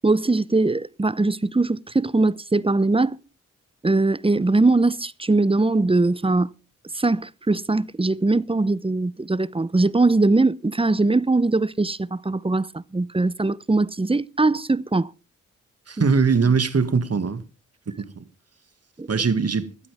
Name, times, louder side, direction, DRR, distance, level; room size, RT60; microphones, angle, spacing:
voice 1, 0.0-3.2 3.8-6.5 6.9-15.1 16.0-16.1 19.0-19.1, right 2 dB, 15° right, 0.8 m, -21 dB
voice 2, 15.9-17.4 17.9-18.3 19.1-19.7, right 5 dB, 50° right, 2.1 m, -21 dB
17.5 x 12.5 x 3.6 m
supercardioid pair, 45°, 32 cm